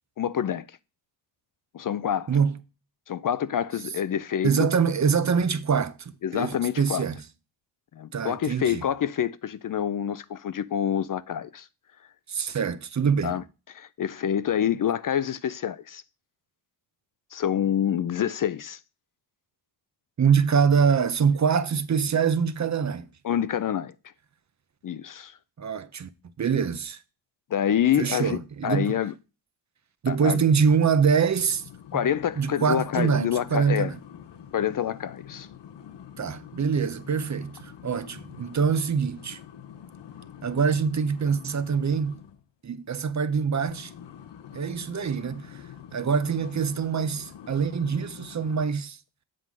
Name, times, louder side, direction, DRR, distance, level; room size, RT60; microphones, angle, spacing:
voice 1, 0.2-0.8 1.7-2.3 3.1-4.7 6.2-7.0 7.9-11.7 13.2-13.4 13.7-16.0 17.3-18.8 23.2-23.9 24.8-25.4 27.5-29.1 30.1-30.4 31.9-33.9 34.5-35.5, left 9 dB, 50° left, 0.5 m, -27 dB
voice 2, 4.4-7.2 8.1-8.8 12.3-13.4 20.2-23.1 25.6-26.1 26.4-27.0 28.0-28.9 30.0-31.6 32.4-33.9 36.2-39.4 40.4-42.2 42.6-43.9 44.5-45.6 45.9-49.0, right 6 dB, 40° right, 0.7 m, -24 dB
sound 1, 31.3-42.4 43.5-48.7, left 9 dB, 70° left, 0.9 m, -46 dB
7.7 x 3.8 x 6.0 m
cardioid pair, 80°, 44 cm